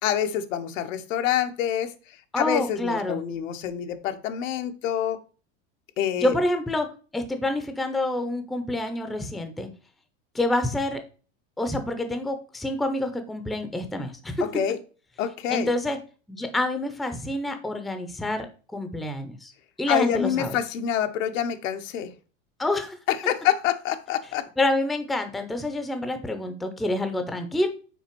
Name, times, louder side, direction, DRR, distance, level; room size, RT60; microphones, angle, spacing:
voice 1, 0.0-5.2 6.0-6.3 14.4-14.8 15.2-15.7 19.9-22.1 23.1-24.5, left 10 dB, 90° left, 8 dB, 1.0 m, -27 dB
voice 2, 2.3-3.2 6.2-9.7 10.3-11.0 11.6-14.5 15.5-16.0 16.3-18.5 18.7-19.5 19.8-20.6 22.6-23.0 24.6-27.7, left 1 dB, ahead, 7 dB, 0.4 m, -27 dB
5.8 x 4.3 x 4.4 m, 0.37 s
supercardioid pair, 145°, 38 cm